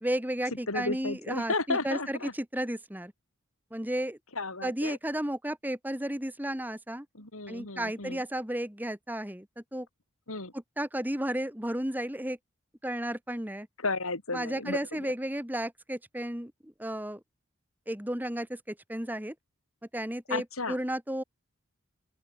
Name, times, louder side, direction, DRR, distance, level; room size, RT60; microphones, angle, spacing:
voice 1, 0.0-3.1 3.7-4.2 4.6-7.1 7.5-9.5 9.7-9.9 10.8-12.4 12.8-13.7 14.3-17.2 17.9-19.3 19.9-21.2, right 1 dB, 10° right, 1.8 m, -33 dB
voice 2, 0.7-2.3 4.3-5.0 7.1-8.2 10.3-10.5 13.8-15.1 20.3-20.8, left 3 dB, 80° left, 4.7 m, -33 dB
open air
head